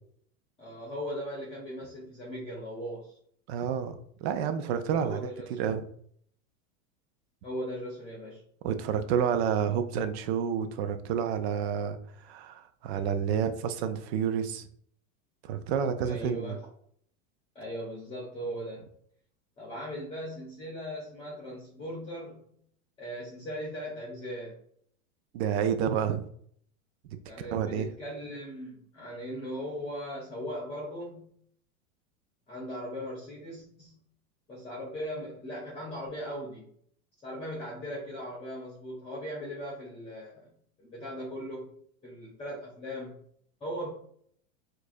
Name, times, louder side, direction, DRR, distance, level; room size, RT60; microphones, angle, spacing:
voice 1, 0.6-3.2 5.0-5.5 7.4-8.4 16.0-16.6 17.5-18.8 19.6-22.5 23.0-24.5 27.3-31.3 32.5-34.0 34.5-36.7 37.2-40.5 40.8-41.7 42.0-43.1 43.6-43.9, equal, 15° left, -5 dB, 0.9 m, -38 dB
voice 2, 3.5-5.9 8.6-14.7 15.4-16.6 25.3-26.3 27.5-27.9, right 8 dB, 50° right, 9 dB, 0.4 m, -29 dB
4.5 x 2.5 x 2.5 m, 0.63 s
supercardioid pair, 140°, 41 cm